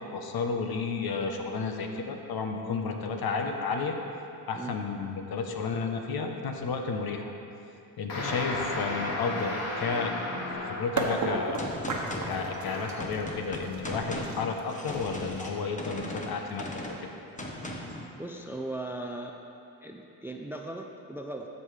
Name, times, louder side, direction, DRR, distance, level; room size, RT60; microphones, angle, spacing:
voice 1, 0.0-4.0 4.5-7.3 8.0-10.1 10.7-11.6 12.3-16.8, left 4 dB, 55° left, 4 dB, 1.0 m, -32 dB
sound 1, 8.1-11.1 12.3-13.1, left 1 dB, 70° left, 2.1 m, -34 dB
sound 2, 11.0-16.8, right 3 dB, 40° right, 1.2 m, -35 dB
Gunshot gunfire, 11.6-18.1, left 1 dB, 15° left, 1.1 m, -38 dB
voice 2, 18.2-19.3 19.8-21.5, right 2 dB, 5° right, 3 dB, 0.4 m, -38 dB
13.5 x 5.5 x 3.4 m, 2.7 s
cardioid pair, 80°, 43 cm